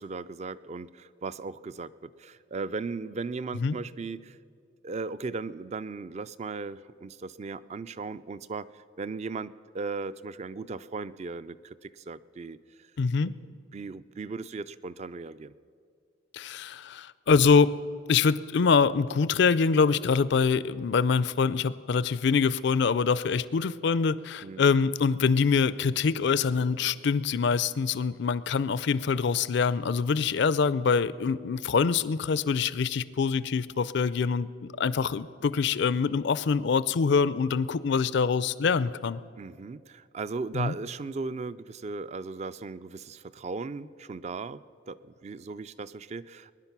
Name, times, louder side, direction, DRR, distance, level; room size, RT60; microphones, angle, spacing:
voice 1, 0.0-4.4 4.8-12.6 13.7-15.5 24.4-24.6 39.4-44.6 44.9-46.5, right 4 dB, 35° right, 16 dB, 0.3 m, -37 dB
voice 2, 13.0-13.3 16.3-17.7 18.1-34.5 34.8-39.2 40.5-40.7, left 5 dB, 60° left, 17 dB, 0.4 m, -25 dB
21.0 x 10.5 x 6.0 m, 2.2 s
head